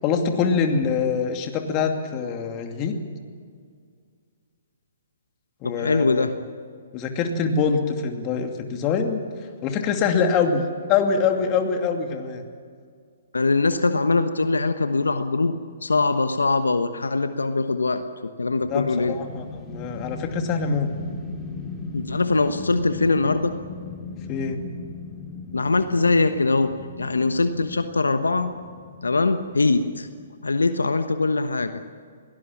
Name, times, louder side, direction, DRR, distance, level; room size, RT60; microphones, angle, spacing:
voice 1, 0.0-3.0 5.6-6.3 6.9-9.2 9.6-10.6 10.9-12.4 18.7-20.9 24.3-24.6, left 5 dB, 30° left, 4 dB, 2.6 m, -24 dB
voice 2, 5.6-6.3 13.3-19.2 21.9-23.5 25.5-26.7 27.0-28.5 29.0-30.1 30.4-31.8, left 3 dB, 85° left, 9 dB, 1.2 m, -22 dB
sound 1, 18.6-30.8, left 3 dB, 10° left, 3.3 m, -38 dB
22.5 x 18.5 x 7.4 m, 2.1 s
figure-of-eight pair, 125°, 0 cm